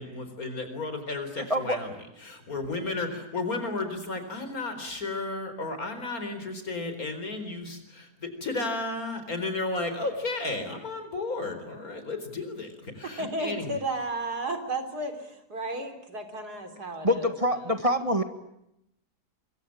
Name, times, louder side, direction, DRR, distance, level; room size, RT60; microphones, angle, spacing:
voice 1, 0.0-1.9 2.2-13.7, left 3 dB, 60° left, 8 dB, 4.8 m, -33 dB
voice 2, 1.4-1.9 17.0-18.2, left 1 dB, 20° right, 7 dB, 1.9 m, -25 dB
voice 3, 13.2-17.3 17.6-17.7, right 2 dB, 75° right, 7 dB, 4.0 m, -33 dB
25.0 x 23.5 x 8.8 m, 0.81 s
omnidirectional pair, 1.7 m